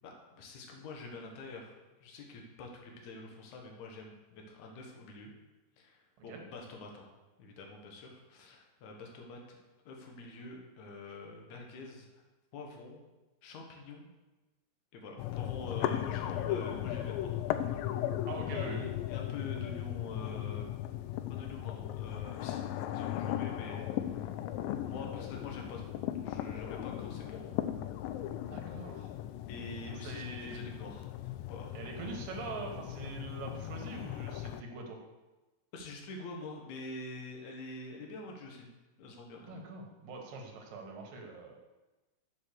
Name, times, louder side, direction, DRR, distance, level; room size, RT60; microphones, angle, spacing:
voice 1, 0.0-5.3 5.8-7.1 7.4-9.6 9.9-12.2 12.5-13.0 13.4-14.1 14.9-17.4 17.7-17.9 18.4-20.7 21.3-22.7 22.9-24.4 24.8-27.5 29.5-31.8 35.7-38.7 39.0-39.7, left 2 dB, 65° left, 1 dB, 2.6 m, -46 dB
sound 1, 15.2-34.6, left 12 dB, 90° left, 2.3 m, -37 dB
voice 2, 18.3-18.9 28.5-29.1 30.0-30.7 31.7-35.0 39.5-41.6, right 3 dB, 80° right, 2 dB, 3.1 m, -43 dB
7.4 x 6.8 x 6.6 m, 1.1 s
omnidirectional pair, 3.9 m